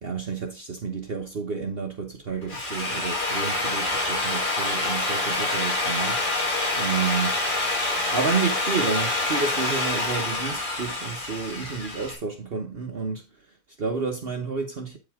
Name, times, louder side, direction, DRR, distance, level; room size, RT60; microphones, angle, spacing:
voice 1, 0.0-7.4 8.1-15.0, right 5 dB, 45° right, 1.3 m, -30 dB
Drill, 2.3-12.2, left 2 dB, 35° left, 2.0 m, -26 dB
8.9 x 5.5 x 3.6 m
omnidirectional pair, 1.4 m